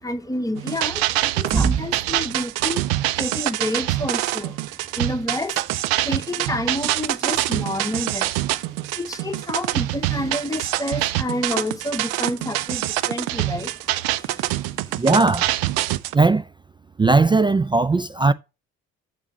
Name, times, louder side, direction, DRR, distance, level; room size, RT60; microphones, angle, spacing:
voice 1, 0.0-2.9 3.2-4.6 4.9-8.4 8.9-15.0, left 1 dB, 10° left, 1.1 m, -29 dB
sound 1, 0.6-16.1, right 16 dB, 70° right, 0.6 m, -25 dB
voice 2, 15.0-15.5 16.1-16.5 17.0-18.3, right 3 dB, 15° right, 0.3 m, -18 dB
7.4 x 7.1 x 2.8 m
hypercardioid pair, 50°, 40 cm